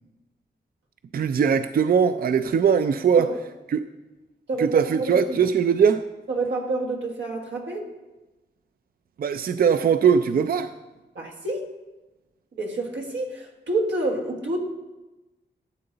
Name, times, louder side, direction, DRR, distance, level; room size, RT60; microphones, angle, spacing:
voice 1, 1.1-3.3 3.7-3.8 4.6-6.0 9.2-10.7, right 7 dB, 55° right, 0.4 m, -20 dB
voice 2, 4.5-5.4 6.3-7.8 11.1-11.7 12.6-14.6, right 2 dB, 90° right, 1.6 m, -28 dB
12.5 x 7.8 x 3.9 m
wide cardioid pair, 85°, 18 cm